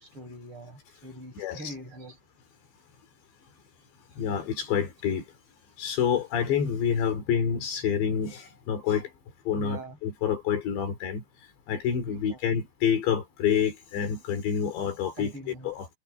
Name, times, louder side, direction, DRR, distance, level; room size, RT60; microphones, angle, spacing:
voice 1, 0.0-2.2 9.5-10.0 12.0-12.6 15.2-15.7, right 1 dB, 25° right, 8.3 m, -43 dB
voice 2, 4.2-5.2 5.8-9.1 9.5-11.2 11.7-15.3 15.6-15.9, left 8 dB, 65° left, 5.0 m, -27 dB
omnidirectional pair, 5.7 m